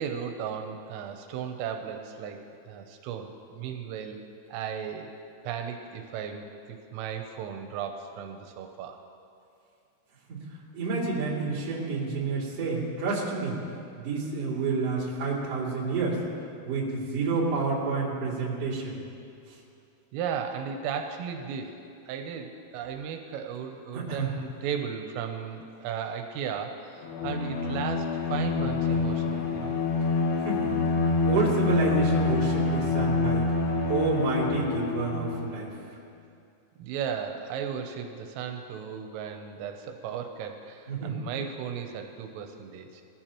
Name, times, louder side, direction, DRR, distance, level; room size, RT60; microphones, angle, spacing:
voice 1, 0.0-4.2 4.5-5.1 5.4-9.0 20.1-21.7 22.1-29.8 36.8-43.0, right 7 dB, 85° right, 5 dB, 3.3 m, -35 dB
voice 2, 10.7-13.6 14.0-16.2 16.6-19.0 23.9-24.3 30.4-30.7 31.0-33.5 33.9-35.7 40.9-41.2, right 4 dB, 40° right, -7 dB, 2.9 m, -29 dB
Bowed string instrument, 27.0-35.5, left 4 dB, 75° left, 3.5 m, -27 dB
20.0 x 14.0 x 3.0 m, 2.6 s
omnidirectional pair, 5.8 m